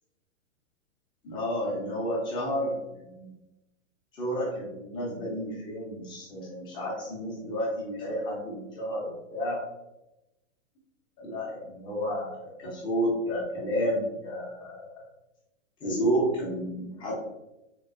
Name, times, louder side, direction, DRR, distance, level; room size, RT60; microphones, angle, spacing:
voice 1, 1.2-3.4 4.1-9.6 11.2-15.0 15.8-17.1, equal, 10° left, -4 dB, 0.5 m, -31 dB
3.6 x 2.6 x 2.4 m, 0.95 s
hypercardioid pair, 150°, 38 cm